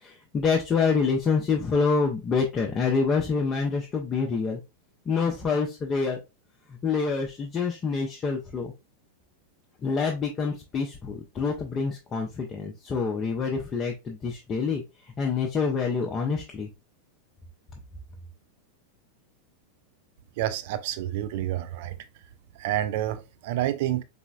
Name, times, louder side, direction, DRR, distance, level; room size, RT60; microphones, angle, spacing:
voice 1, 0.0-4.6 5.1-6.2 6.8-8.7 9.8-14.8 15.2-16.7, left 5 dB, 25° left, 0.6 m, -26 dB
voice 2, 20.4-21.9 22.6-24.0, right 13 dB, 50° right, 0.4 m, -28 dB
4.0 x 3.4 x 2.3 m
figure-of-eight pair, 90°, 0 cm